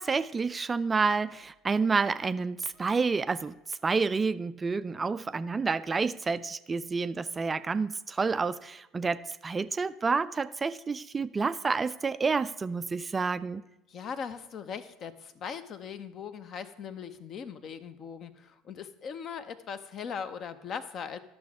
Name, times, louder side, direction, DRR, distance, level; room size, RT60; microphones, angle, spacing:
voice 1, 0.0-13.6, right 4 dB, 20° right, 14 dB, 0.3 m, -29 dB
voice 2, 13.9-21.2, left 6 dB, 40° left, 12 dB, 0.7 m, -39 dB
12.0 x 6.3 x 4.8 m, 0.93 s
figure-of-eight pair, 65°, 0 cm